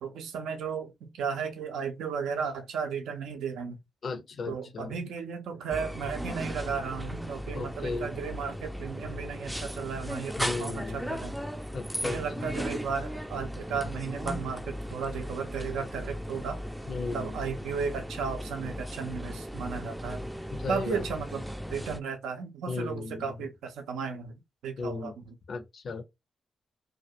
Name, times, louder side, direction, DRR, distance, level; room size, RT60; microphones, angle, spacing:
voice 1, 0.0-3.8 4.5-11.4 12.0-16.6 17.1-20.2 20.7-21.4 21.7-25.2, right 6 dB, 75° right, 0.4 m, -35 dB
voice 2, 4.0-5.0 7.5-8.1 10.4-11.1 11.7-12.2 16.9-17.4 20.5-21.0 22.7-23.5 24.8-25.1 25.5-26.0, left 4 dB, 60° left, 0.5 m, -35 dB
sound 1, 5.7-22.0, equal, 5° right, 0.3 m, -37 dB
2.4 x 2.1 x 2.7 m
hypercardioid pair, 40°, 0 cm